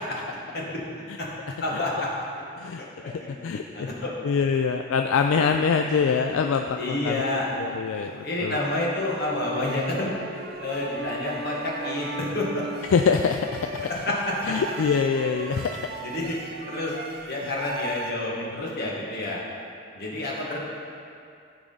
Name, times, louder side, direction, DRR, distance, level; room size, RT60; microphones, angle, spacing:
voice 1, 1.6-2.1 2.8-4.1 5.3-5.4 6.0-6.1 6.7-7.6 8.2-10.1 10.6-12.6 14.0-14.3 16.0-16.3 16.7-16.9 17.3-19.4 19.9-20.6, left 2 dB, 50° left, -4 dB, 1.7 m, -29 dB
voice 2, 3.4-3.9 4.2-7.3 7.6-8.6 12.9-13.8 14.4-15.9, left 5 dB, 75° left, 5 dB, 0.3 m, -24 dB
sound 1, 7.6-18.1, right 3 dB, 45° right, 0.5 m, -38 dB
14.0 x 4.8 x 3.9 m, 2.4 s
head